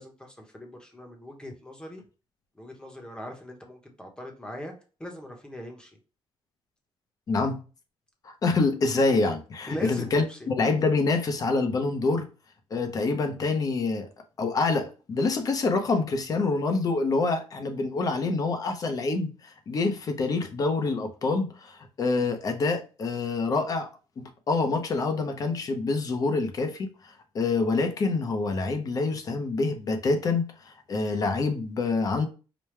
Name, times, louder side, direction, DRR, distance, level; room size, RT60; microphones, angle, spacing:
voice 1, 0.0-2.0 2.5-4.7 5.0-5.9 9.7-10.5, equal, 10° left, 1.0 m, -40 dB
voice 2, 7.3-7.6 8.2-12.3 12.7-14.1 14.4-23.9 24.2-32.3, left 3 dB, 40° left, 0.8 m, -26 dB
5.1 x 2.2 x 3.2 m
cardioid pair, 140°, 10 cm